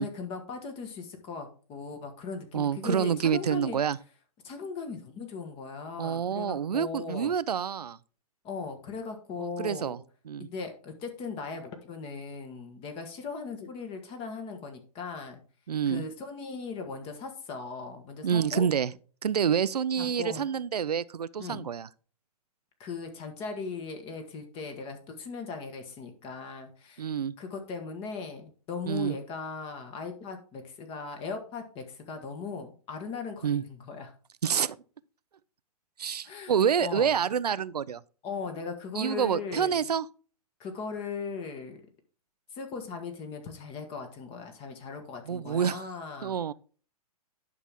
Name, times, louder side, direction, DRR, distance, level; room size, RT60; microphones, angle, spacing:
voice 1, 0.0-3.8 4.4-7.3 8.4-10.0 10.4-15.4 15.9-18.7 20.0-20.5 21.4-21.7 22.8-27.1 27.4-34.1 36.2-37.1 38.2-39.8 40.6-41.8 42.5-46.5, left 5 dB, 30° left, 1.5 m, -38 dB
voice 2, 2.5-4.0 6.0-8.0 9.4-10.0 10.3-10.5 15.7-16.0 18.2-18.9 19.2-21.9 27.0-27.3 28.9-29.2 33.4-33.6 34.4-34.8 36.0-38.0 39.0-40.1 45.3-45.8 46.2-46.5, right 7 dB, 90° right, 0.5 m, -27 dB
10.5 x 5.9 x 3.5 m
hypercardioid pair, 125°, 20 cm